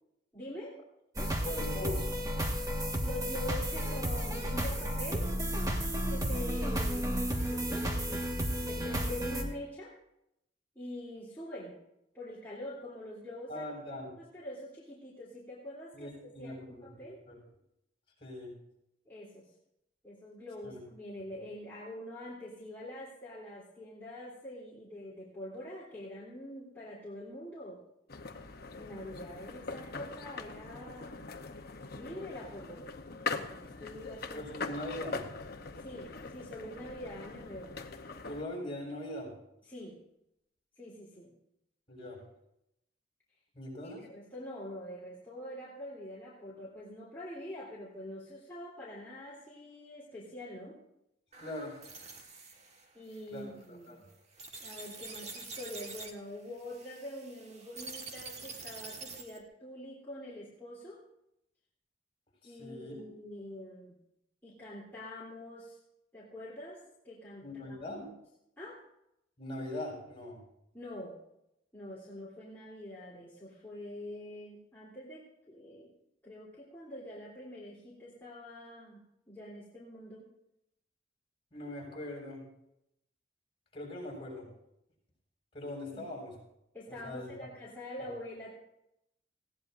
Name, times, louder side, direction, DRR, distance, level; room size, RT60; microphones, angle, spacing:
voice 1, 0.3-0.8 3.0-5.3 6.1-9.9 10.7-11.8 12.1-13.7 14.2-16.6 16.8-17.2 19.1-19.5 20.0-27.8 28.7-31.2 31.9-32.9 33.3-34.4 35.8-37.8 39.7-40.0 40.8-41.3 43.8-50.8 52.9-54.0 54.6-61.0 62.4-64.0 64.4-65.8 66.1-67.5 67.9-68.1 68.6-68.8 70.7-71.2 71.7-75.9 76.2-80.3 85.9-86.1 86.7-88.6, left 1 dB, 10° left, -8 dB, 3.3 m, -45 dB
sound 1, 1.1-9.4, equal, 20° right, 1.5 m, -32 dB
voice 2, 1.4-2.1 13.5-14.1 15.9-16.9 17.3-17.4 18.2-18.5 20.6-20.8 34.3-35.2 38.3-39.3 41.9-42.2 43.5-44.1 51.4-51.8 53.3-53.4 53.7-54.1 62.4-62.9 67.4-68.0 69.4-70.4 81.5-82.4 83.7-84.5 85.5-86.3 86.9-87.3 88.0-88.1, left 1 dB, 30° left, -3 dB, 6.3 m, -41 dB
sound 2, 28.1-38.4, left 4 dB, 55° left, 0.9 m, -42 dB
sound 3, 51.3-59.4, right 3 dB, 35° right, 1.5 m, -47 dB
19.5 x 16.5 x 2.6 m, 0.82 s
head